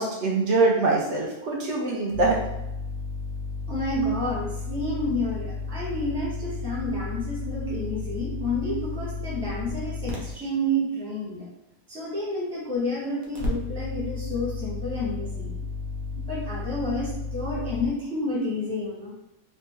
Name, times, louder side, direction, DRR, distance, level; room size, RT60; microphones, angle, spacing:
voice 1, 0.0-2.4, right 3 dB, 65° right, -2 dB, 0.9 m, -23 dB
sound 1, 2.1-10.3 13.2-17.9, left 3 dB, 85° right, 1.2 m, -33 dB
voice 2, 3.7-11.5 11.9-15.5 16.1-19.1, left 1 dB, 5° left, -6 dB, 0.5 m, -30 dB
3.1 x 2.1 x 3.2 m, 0.91 s
omnidirectional pair, 1.4 m